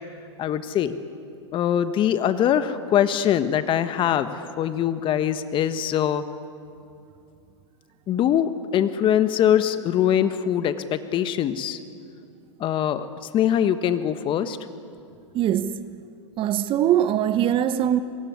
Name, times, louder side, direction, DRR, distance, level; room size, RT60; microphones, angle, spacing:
voice 1, 0.4-1.0 1.5-6.2 8.1-11.8 12.6-13.1 13.3-14.6, left 10 dB, 30° left, 1.3 m, -22 dB
voice 2, 15.3-15.8 16.4-18.0, right 10 dB, 35° right, 1.1 m, -22 dB
26.0 x 22.0 x 9.5 m
hypercardioid pair, 110°, 16 cm